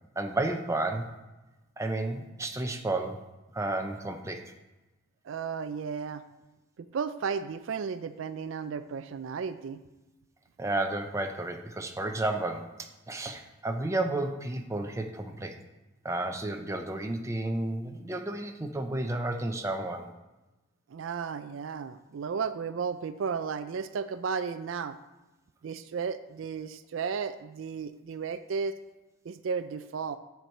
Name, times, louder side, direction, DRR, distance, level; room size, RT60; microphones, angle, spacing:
voice 1, 0.2-1.1 1.8-3.2 3.5-4.4 10.6-15.5 16.0-20.1, right 2 dB, 15° right, 4 dB, 0.6 m, -32 dB
voice 2, 5.2-6.2 6.8-9.8 20.9-25.0 25.6-28.8 29.3-30.2, right 6 dB, 65° right, 12 dB, 0.4 m, -34 dB
7.5 x 4.6 x 6.5 m, 1.1 s
head